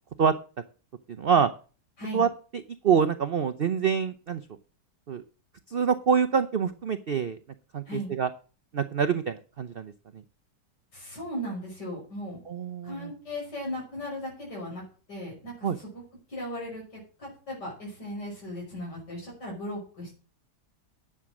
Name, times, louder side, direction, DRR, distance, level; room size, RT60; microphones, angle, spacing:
voice 1, 1.2-1.5 2.1-2.3 2.8-4.4 5.1-5.2 5.7-7.4 7.7-7.8 8.1-8.3 8.7-9.9 12.5-13.1 15.6-15.8, right 6 dB, 65° right, 11 dB, 0.5 m, -25 dB
voice 2, 10.9-12.4 12.8-14.8 15.1-15.9 16.3-20.1, equal, 75° left, -3 dB, 6.4 m, -37 dB
10.0 x 7.1 x 6.1 m, 0.37 s
omnidirectional pair, 1.8 m